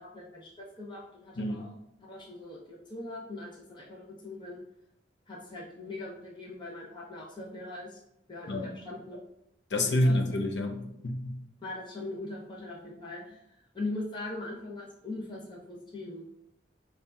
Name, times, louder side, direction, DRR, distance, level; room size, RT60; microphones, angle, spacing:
voice 1, 0.0-1.7 2.0-4.6 5.3-8.0 8.3-9.2 9.7-10.2 11.6-16.2, left 2 dB, 25° left, -4 dB, 0.7 m, -41 dB
voice 2, 1.4-1.7 8.5-8.7 9.7-11.4, left 1 dB, 70° left, 2 dB, 0.6 m, -28 dB
5.4 x 2.4 x 2.3 m, 0.83 s
head